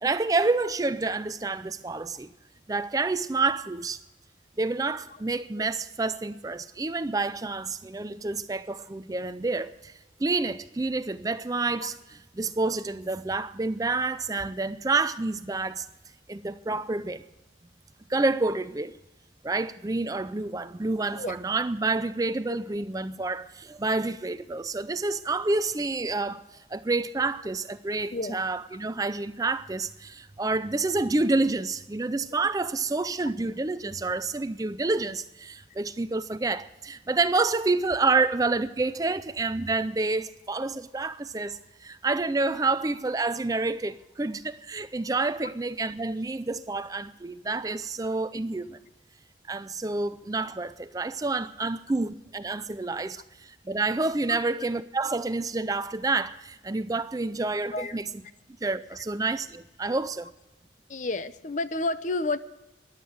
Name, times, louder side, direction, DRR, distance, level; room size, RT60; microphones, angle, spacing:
voice 1, 0.0-2.3 2.7-4.0 4.6-9.9 10.2-15.9 16.3-17.2 18.1-19.0 19.4-26.4 26.7-48.8 49.5-58.1 58.6-60.3, right 3 dB, 20° right, 0.4 m, -28 dB
voice 2, 60.9-62.4, left 2 dB, 40° left, 0.6 m, -31 dB
15.0 x 11.0 x 6.3 m
head